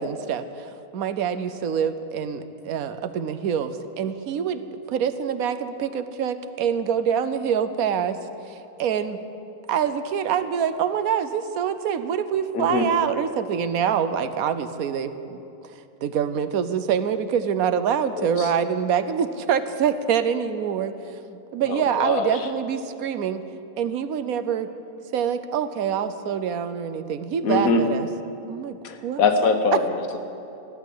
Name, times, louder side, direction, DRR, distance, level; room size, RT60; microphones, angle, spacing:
voice 1, 0.0-8.2 8.5-9.2 9.7-15.4 16.0-20.9 21.3-23.4 23.8-24.7 25.1-28.1 28.5-29.2 29.7-29.8, right 8 dB, 90° right, 11 dB, 1.2 m, -25 dB
voice 2, 12.5-12.9 18.2-18.5 21.7-22.3 27.4-27.8 28.8-30.2, left 4 dB, 80° left, 7 dB, 1.6 m, -23 dB
14.5 x 11.0 x 8.5 m, 2.7 s
omnidirectional pair, 1.5 m